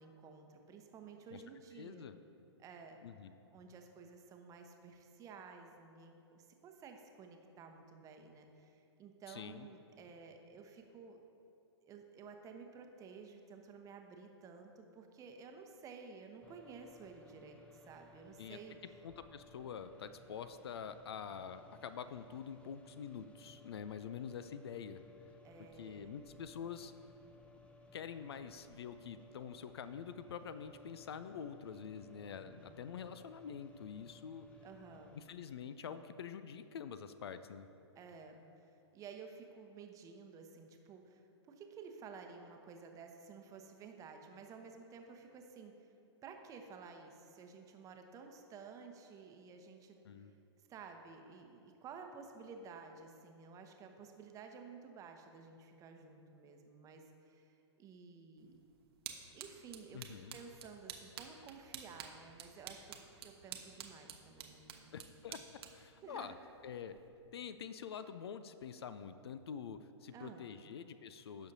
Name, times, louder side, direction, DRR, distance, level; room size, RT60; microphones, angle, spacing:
voice 1, 0.0-2.1 2.6-3.0 3.5-11.2 11.8-18.8 25.4-26.2 32.4-33.0 34.6-35.2 37.9-45.9 46.2-50.3 50.7-58.6 59.3-64.9 66.0-66.4 70.1-70.5, right 5 dB, 20° right, 4 dB, 0.9 m, -53 dB
voice 2, 1.8-2.2 3.0-3.3 9.3-9.7 18.4-18.6 19.0-25.0 25.6-26.9 27.9-34.5 35.2-37.7 50.0-50.3 59.9-60.4 64.9-66.3 66.6-67.0 67.3-71.5, left 7 dB, 60° left, 12 dB, 0.5 m, -46 dB
sound 1, 16.4-35.2, left 2 dB, 10° left, 0.6 m, -61 dB
sound 2, 58.4-67.1, right 7 dB, 60° right, 1.0 m, -52 dB
16.5 x 6.2 x 2.7 m, 2.7 s
figure-of-eight pair, 110°, 15 cm